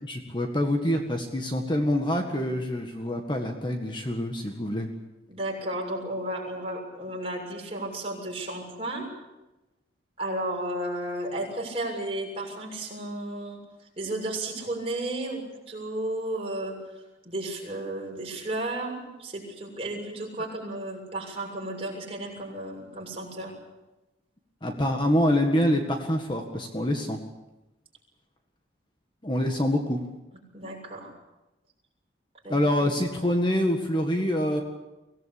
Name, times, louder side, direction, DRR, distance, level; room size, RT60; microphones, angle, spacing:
voice 1, 0.0-4.9 24.6-27.2 29.2-30.0 32.5-34.6, left 1 dB, 25° left, 3 dB, 1.8 m, -26 dB
voice 2, 5.3-9.1 10.2-13.6 14.0-23.5 30.5-31.1 32.4-32.6, right 1 dB, 30° right, -1 dB, 6.9 m, -33 dB
24.5 x 17.5 x 8.6 m, 1.0 s
head